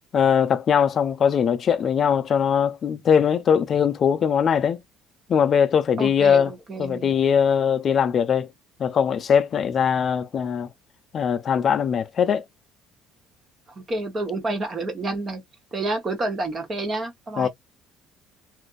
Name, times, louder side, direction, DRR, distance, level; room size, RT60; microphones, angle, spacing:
voice 1, 0.1-4.8 5.3-6.5 6.8-8.5 8.8-10.7 11.1-12.4 17.4-17.5, left 7 dB, 35° left, 0.4 m, -21 dB
voice 2, 6.0-7.1 13.8-15.4 15.7-17.5, right 2 dB, 25° right, 1.0 m, -29 dB
3.3 x 2.6 x 2.4 m
cardioid pair, 160°, 0 cm